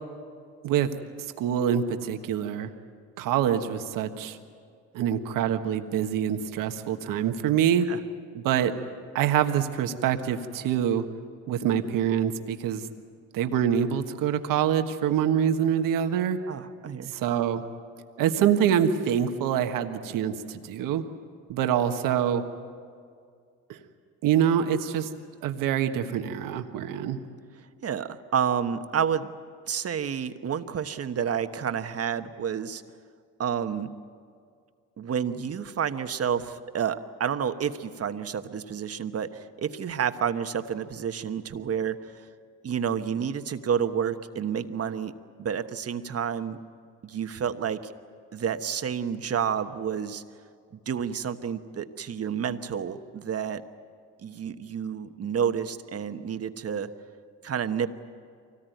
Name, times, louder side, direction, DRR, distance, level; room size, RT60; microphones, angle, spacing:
voice 1, 1.4-2.7 3.2-4.4 4.9-7.9 8.3-8.7 9.1-11.1 11.5-12.9 13.3-16.4 17.1-17.6 18.2-21.0 21.5-22.4 23.7-23.8 24.2-25.1 25.4-27.2, right 9 dB, 80° right, 7 dB, 1.4 m, -25 dB
voice 2, 16.5-17.1 27.8-29.3 29.7-32.8 33.4-33.9 35.0-42.3 42.6-45.1 45.4-46.6 47.0-47.9 48.3-50.2 50.9-53.6 54.2-56.9 57.4-57.9, right 7 dB, 45° right, 9 dB, 1.2 m, -29 dB
24.0 x 18.5 x 9.3 m, 2.2 s
supercardioid pair, 75°, 32 cm